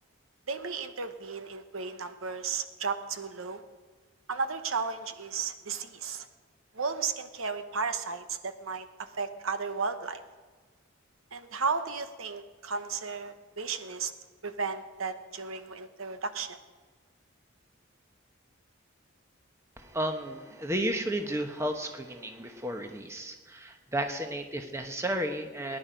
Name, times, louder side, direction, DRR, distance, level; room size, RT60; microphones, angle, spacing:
voice 1, 0.5-3.6 4.3-6.3 6.7-10.2 11.3-14.1 14.4-16.6, right 5 dB, 85° right, 9 dB, 1.0 m, -34 dB
voice 2, 19.8-25.8, right 1 dB, 15° right, 5 dB, 0.9 m, -33 dB
19.0 x 10.5 x 5.1 m, 1.4 s
head